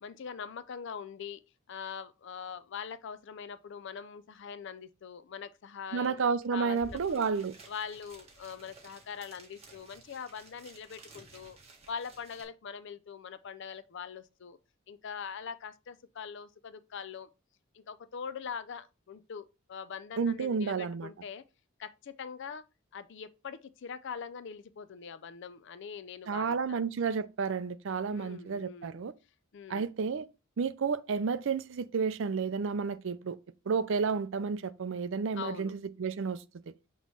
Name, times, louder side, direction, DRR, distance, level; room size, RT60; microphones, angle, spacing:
voice 1, 0.0-1.4 1.7-6.3 6.5-7.3 7.7-11.6 11.9-14.6 14.9-17.3 17.7-21.4 21.8-22.6 22.9-26.9 28.1-29.0 29.5-29.9 35.3-35.7, left 6 dB, 55° left, 0.4 m, -43 dB
voice 2, 5.9-7.5 20.2-21.1 26.3-29.1 29.7-30.3 30.6-33.4 33.7-36.7, right 5 dB, 60° right, 0.4 m, -31 dB
sound 1, 6.4-6.5 6.7-12.4, right 3 dB, 30° right, 1.5 m, -54 dB
6.2 x 3.0 x 5.3 m
head